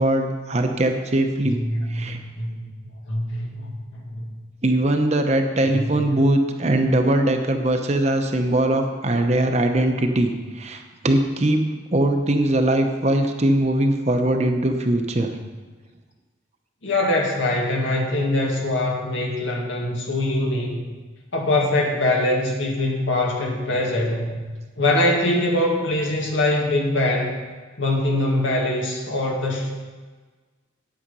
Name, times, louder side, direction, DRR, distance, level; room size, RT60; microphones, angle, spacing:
voice 1, 0.0-1.6 1.9-2.2 4.6-11.6 11.9-15.3, right 1 dB, 35° right, 5 dB, 0.8 m, -21 dB
voice 2, 1.5-2.7 3.1-4.3 5.7-6.2 16.8-20.8 21.3-24.3 24.8-27.4 27.8-29.7, left 1 dB, 80° left, 0 dB, 1.9 m, -23 dB
9.1 x 8.9 x 5.5 m, 1.4 s
head